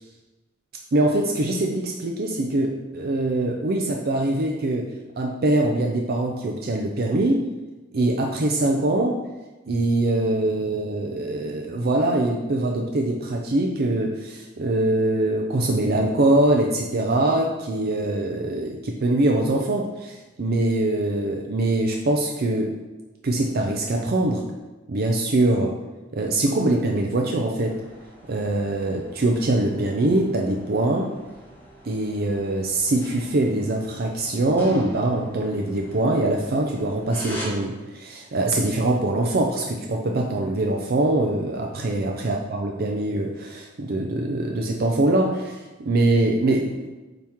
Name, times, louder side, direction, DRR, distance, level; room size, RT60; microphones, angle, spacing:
voice 1, 0.9-4.9 5.2-7.4 7.9-9.2 9.7-22.7 23.2-24.4 24.9-25.7 26.1-27.8 28.3-31.1 31.9-46.9, right 2 dB, 55° right, 1 dB, 0.5 m, -23 dB
sound 1, 27.6-37.5, equal, 10° left, 1.2 m, -43 dB
8.8 x 3.0 x 3.5 m, 1.2 s
head